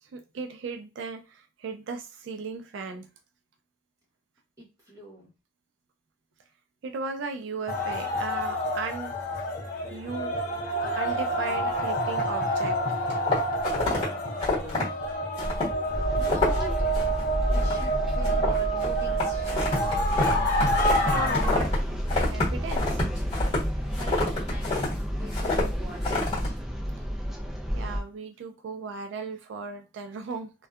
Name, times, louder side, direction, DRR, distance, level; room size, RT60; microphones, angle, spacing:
voice 1, 0.0-3.1 6.8-9.1 9.9-10.4 11.0-13.0 15.9-16.1 21.0-21.8 22.3-23.0 27.7-30.5, right 4 dB, 80° right, 6 dB, 0.3 m, -36 dB
voice 2, 4.6-5.3 13.8-14.8 16.2-16.9 17.5-20.3 23.9-26.6, right 1 dB, 20° right, -5 dB, 1.0 m, -44 dB
sound 1, 7.7-21.5, right 1 dB, 50° left, 0.7 m, -28 dB
sound 2, 13.1-14.0 14.4-14.8 15.4-15.8 16.0-16.6 16.9-17.2 17.5-17.9 18.2-21.8 22.1-24.9 25.3-25.6 26.0-26.5, left 2 dB, 30° left, 1.3 m, -28 dB
sound 3, 15.9-28.0, equal, ahead, 0.4 m, -30 dB
2.6 x 2.2 x 2.3 m, 0.30 s
head